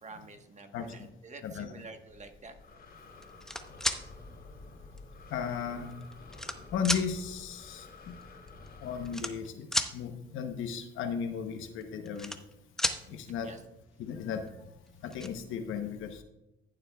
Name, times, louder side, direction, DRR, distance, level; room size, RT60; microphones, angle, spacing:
voice 1, 0.0-2.6 13.4-13.6, right 3 dB, 35° right, 6 dB, 1.2 m, -48 dB
Breathing, 2.1-9.2, left 3 dB, 50° left, 2.8 m, -50 dB
sound 1, 3.2-4.0 5.0-5.1 5.9-6.6 6.8-7.0 8.2-8.3 8.5-8.7 9.0-9.9 11.8-12.5 12.8-13.0 14.5-14.6 14.9-15.3, left 1 dB, 5° left, 0.8 m, -32 dB
voice 2, 5.3-5.9 6.7-8.1 8.8-9.7 9.9-12.3 13.1-13.5 14.0-14.4 15.0-16.2, left 7 dB, 80° left, 6 dB, 0.9 m, -35 dB
14.5 x 7.4 x 2.3 m, 0.93 s
cardioid pair, 90°, 20 cm